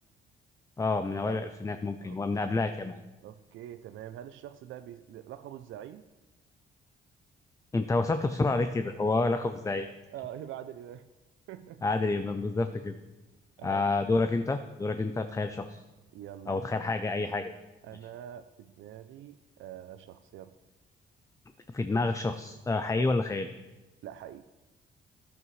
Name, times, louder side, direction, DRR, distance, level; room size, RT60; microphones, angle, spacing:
voice 1, 0.8-3.0 7.7-9.9 11.8-12.9 13.6-15.8 16.5-17.5 21.7-23.5, left 3 dB, 15° left, 9 dB, 0.5 m, -29 dB
voice 2, 3.2-6.1 10.1-11.1 11.5-11.8 13.6-13.9 16.1-16.7 17.8-20.5 22.9-23.1 24.0-24.4, right 11 dB, 80° right, 10 dB, 0.5 m, -44 dB
13.5 x 11.0 x 3.2 m, 1.1 s
cardioid pair, 90°, 20 cm